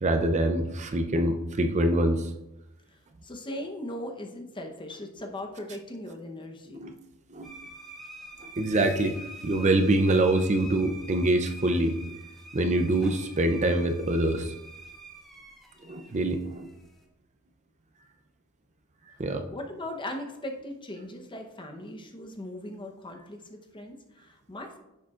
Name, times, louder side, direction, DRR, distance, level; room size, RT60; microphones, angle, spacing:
voice 1, 0.0-2.3 6.7-6.9 7.3-7.5 8.4-12.0 12.5-14.5 15.8-16.7 19.2-19.4, right 1 dB, 30° right, 6 dB, 0.5 m, -25 dB
voice 2, 2.9-6.8 19.5-24.8, left 1 dB, 20° left, 3 dB, 0.9 m, -39 dB
sound 1, 7.4-17.0, right 1 dB, ahead, 1.1 m, -46 dB
10.5 x 6.9 x 2.5 m, 0.93 s
head